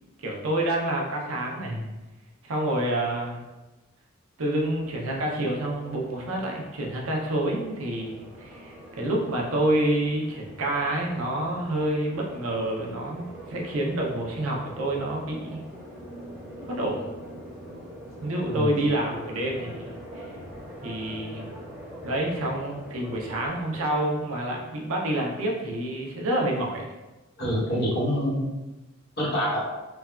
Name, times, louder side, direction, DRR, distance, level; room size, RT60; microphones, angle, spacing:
voice 1, 0.2-1.8 2.4-3.4 4.4-15.6 16.7-17.1 18.2-20.4 20.8-21.5 22.0-26.8 27.7-27.8, right 1 dB, 80° right, -1 dB, 0.6 m, -28 dB
sound 1, 4.6-24.4, equal, 5° right, 1.1 m, -44 dB
voice 2, 27.4-28.5 29.2-29.6, equal, 50° left, -7 dB, 1.0 m, -26 dB
3.2 x 2.2 x 2.3 m, 1.1 s
head